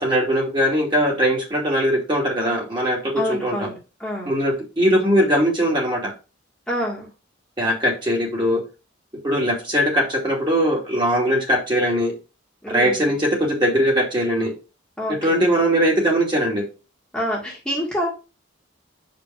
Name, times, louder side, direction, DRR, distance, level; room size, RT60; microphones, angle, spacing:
voice 1, 0.0-3.7 4.2-6.1 7.6-8.6 9.2-12.1 12.7-14.5 15.1-16.6, equal, 25° right, -2 dB, 2.3 m, -20 dB
voice 2, 3.2-4.3 6.7-7.1 12.6-13.1 15.0-15.4 17.1-18.1, equal, 5° left, -4 dB, 1.7 m, -27 dB
6.5 x 5.2 x 3.4 m, 0.31 s
head